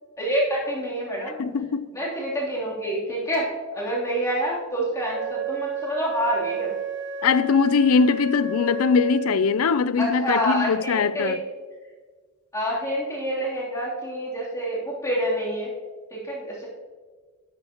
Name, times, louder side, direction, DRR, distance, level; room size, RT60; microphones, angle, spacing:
voice 1, 0.2-1.5 1.9-6.7 10.0-11.4 12.5-15.7 16.1-16.7, equal, 15° left, 3.1 m, -27 dB
voice 2, 1.4-1.9 7.2-11.4, left 5 dB, 75° left, 0.5 m, -21 dB
Wind instrument woodwind instrument, 5.1-9.7, right 4 dB, 55° right, 1.1 m, -32 dB
12.5 x 11.5 x 3.0 m
head